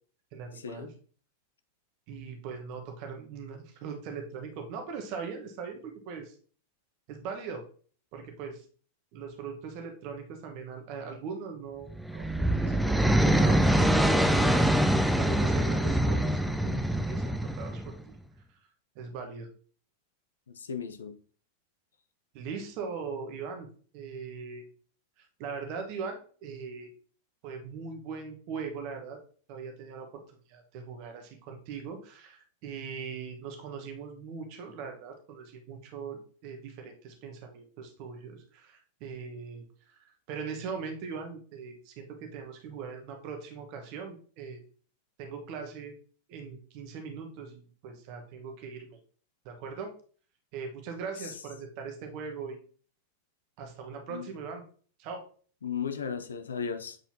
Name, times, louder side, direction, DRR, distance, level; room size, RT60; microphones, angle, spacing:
voice 1, 0.3-0.9 2.1-6.3 7.1-7.6 8.1-8.6 9.1-14.7 15.2-16.6 16.9-17.9 18.9-19.5 22.3-23.7 23.9-24.6 25.2-26.9 27.4-29.2 29.5-30.2 30.5-44.6 45.2-45.9 46.3-49.0 49.4-49.9 50.5-52.6 53.6-54.6 55.0-55.2, right 5 dB, 45° right, 1.3 m, -40 dB
sound 1, 11.9-18.0, right 1 dB, ahead, 0.4 m, -24 dB
voice 2, 20.5-21.2 51.2-51.3 54.1-54.3 55.6-57.0, left 6 dB, 70° left, 0.6 m, -36 dB
7.7 x 4.3 x 2.8 m
figure-of-eight pair, 90°, 0 cm